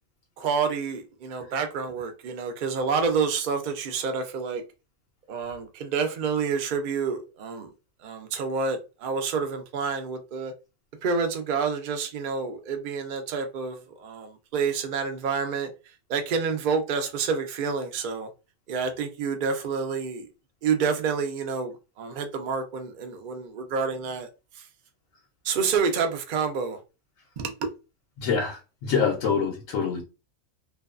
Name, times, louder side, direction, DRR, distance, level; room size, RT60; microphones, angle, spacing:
voice 1, 0.4-4.6 5.3-7.7 8.0-10.5 11.0-15.7 16.1-18.3 18.7-20.3 20.6-24.3 25.4-26.8 27.4-27.7, right 5 dB, 60° right, 0.5 m, -28 dB
voice 2, 28.2-30.0, left 6 dB, 85° left, 1.1 m, -25 dB
2.6 x 2.2 x 2.3 m
omnidirectional pair, 1.4 m